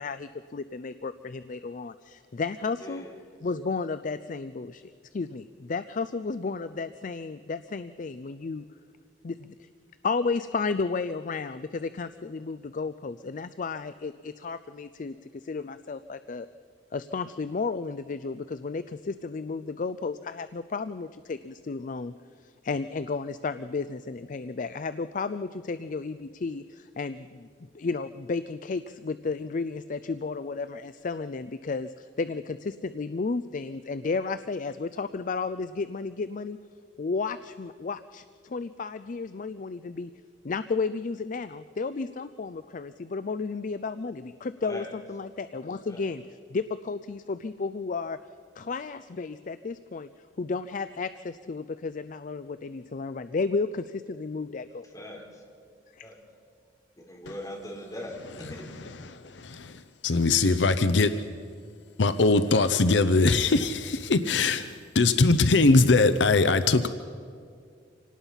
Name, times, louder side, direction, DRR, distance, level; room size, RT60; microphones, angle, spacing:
voice 1, 0.0-3.0 3.4-8.7 9.2-9.7 10.0-16.5 16.9-27.5 27.7-36.6 37.0-40.1 40.4-46.2 46.5-48.2 48.6-50.1 50.4-54.9 55.9-56.1, left 4 dB, 45° left, 13 dB, 0.4 m, -33 dB
voice 2, 2.8-3.1 44.6-44.9 45.9-46.1 54.8-55.4 56.0-56.2 57.0-58.7, left 1 dB, 20° left, -1 dB, 3.9 m, -41 dB
voice 3, 59.1-59.8 60.0-61.1 62.0-64.7 64.9-66.9, left 3 dB, 75° left, 11 dB, 0.7 m, -21 dB
26.0 x 18.5 x 5.7 m, 2.2 s
head